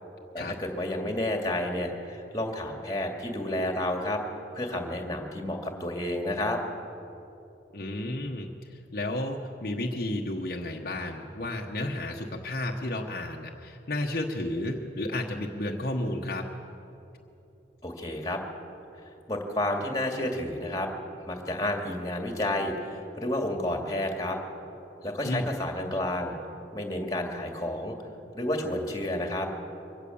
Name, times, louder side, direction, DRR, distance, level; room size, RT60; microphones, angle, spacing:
voice 1, 0.3-4.2 4.5-6.6 17.8-18.4 19.3-20.9 21.3-24.4 25.0-26.4 26.7-27.9 28.3-29.5, left 1 dB, 20° left, 2 dB, 2.3 m, -30 dB
voice 2, 7.7-16.5 25.2-25.5, left 1 dB, 55° left, 0 dB, 1.2 m, -32 dB
23.5 x 17.5 x 7.2 m, 2.9 s
head